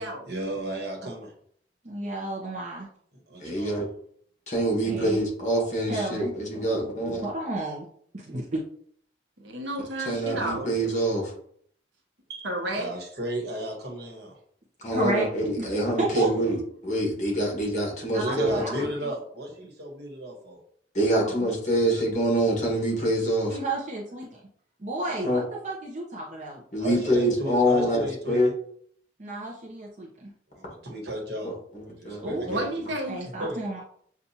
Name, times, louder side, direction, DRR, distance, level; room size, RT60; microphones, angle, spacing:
voice 1, 0.3-1.3 3.3-3.8 10.2-10.6 12.3-14.3 16.0-16.6 18.2-20.6 25.0-25.2 26.8-28.5 30.5-31.6 31.8-32.6 33.4-33.6, right 1 dB, 60° right, 0 dB, 1.3 m, -34 dB
voice 2, 1.8-2.9 4.8-5.2 5.9-7.9 8.1-8.6 14.9-15.3 15.6-15.7 16.0-16.3 18.1-19.1 21.2-21.4 23.5-24.3 24.8-26.6 29.2-30.3 32.2-32.5 33.1-33.8, right 2 dB, 40° right, -3 dB, 0.7 m, -32 dB
voice 3, 3.4-3.9 4.5-7.3 10.0-11.3 14.8-18.8 20.9-23.6 25.2-25.4 26.7-28.5 31.4-32.6, right 1 dB, 40° left, -1 dB, 1.5 m, -26 dB
voice 4, 9.4-10.9 12.4-12.9 32.5-33.3, right 1 dB, 80° right, 1 dB, 1.0 m, -31 dB
7.0 x 2.5 x 2.8 m, 0.63 s
head